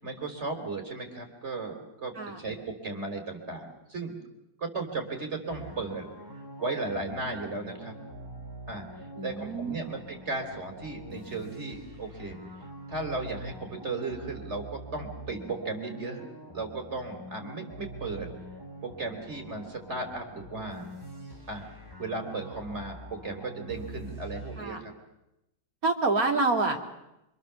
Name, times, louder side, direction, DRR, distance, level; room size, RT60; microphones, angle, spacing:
voice 1, 0.0-4.1 4.6-6.1 6.6-7.9 8.7-8.8 9.2-12.4 12.9-16.2 16.5-18.3 18.8-20.9 21.5-21.7 22.0-24.9, right 3 dB, 45° right, 4 dB, 4.1 m, -35 dB
sound 1, 5.5-24.6, right 1 dB, 15° right, 4.4 m, -45 dB
voice 2, 9.2-9.9 24.6-24.8 25.8-26.8, right 3 dB, 65° right, 3 dB, 3.0 m, -27 dB
26.0 x 26.0 x 7.0 m, 0.91 s
omnidirectional pair, 1.6 m